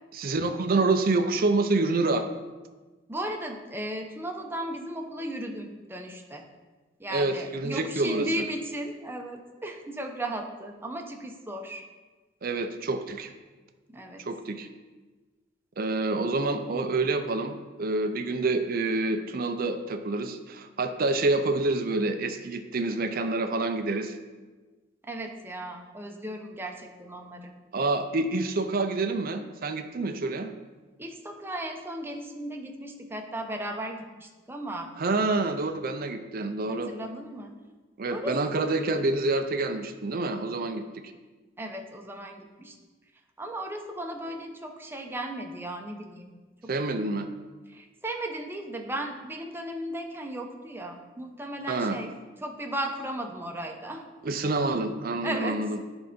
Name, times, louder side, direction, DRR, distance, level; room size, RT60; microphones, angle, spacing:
voice 1, 0.1-2.3 7.1-8.3 12.4-13.3 14.2-14.7 15.8-24.2 27.7-30.5 35.0-36.9 38.0-41.0 46.7-47.3 51.7-52.0 54.2-55.8, right 3 dB, 50° right, 7 dB, 0.5 m, -27 dB
voice 2, 3.1-6.5 7.0-11.8 13.9-14.3 25.0-27.5 31.0-34.9 35.4-35.7 36.7-37.5 38.1-38.8 41.6-42.7 43.4-46.3 46.6-46.7 47.7-52.1 52.4-54.0 55.2-55.6, right 1 dB, 10° right, 3 dB, 0.8 m, -36 dB
10.0 x 4.0 x 5.1 m, 1.3 s
head